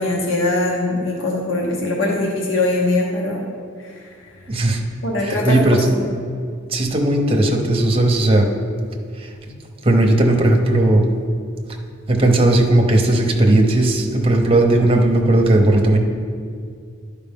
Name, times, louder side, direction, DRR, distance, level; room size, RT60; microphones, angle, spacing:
voice 1, 0.0-3.5 3.8-4.1 5.0-6.1, left 2 dB, 75° left, -1 dB, 0.9 m, -21 dB
voice 2, 4.5-4.8 5.2-5.8 6.7-8.5 9.2-9.3 9.8-11.1 12.1-16.0, right 1 dB, 30° right, 2 dB, 0.8 m, -16 dB
11.0 x 4.9 x 3.5 m, 2.2 s
head